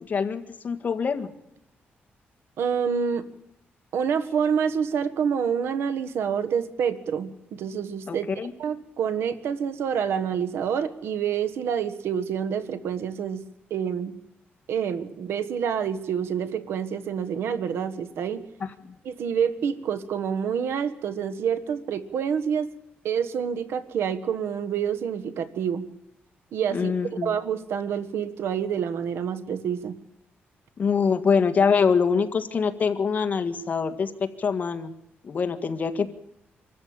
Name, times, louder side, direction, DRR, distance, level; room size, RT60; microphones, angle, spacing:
voice 1, 0.1-1.3 8.1-8.5 18.8-18.9 26.7-27.3 30.8-34.9 35.2-36.1, left 5 dB, 40° left, 8 dB, 1.8 m, -24 dB
voice 2, 2.6-3.3 3.9-8.3 8.6-13.4 13.7-14.2 14.7-18.4 19.0-22.7 23.0-25.9 26.5-29.9, right 7 dB, 90° right, 11 dB, 1.5 m, -27 dB
25.5 x 14.0 x 8.9 m, 0.85 s
cardioid pair, 130°, 4 cm